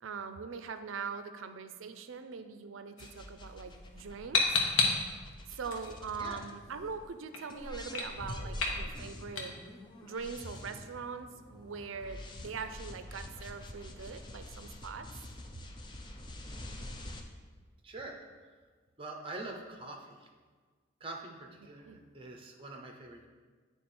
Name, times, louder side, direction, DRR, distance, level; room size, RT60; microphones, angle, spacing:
voice 1, 0.0-4.5 5.5-9.5 10.0-15.1 21.8-22.0, right 5 dB, 75° right, 9 dB, 0.4 m, -42 dB
sound 1, 3.0-12.8, left 4 dB, 80° left, 1.0 m, -36 dB
sound 2, 3.0-7.1 7.5-17.2, left 1 dB, 25° left, 0.4 m, -46 dB
voice 2, 17.8-18.2 19.0-20.3 21.0-23.3, right 2 dB, 25° right, 2 dB, 0.7 m, -44 dB
8.5 x 3.5 x 4.3 m, 1.5 s
head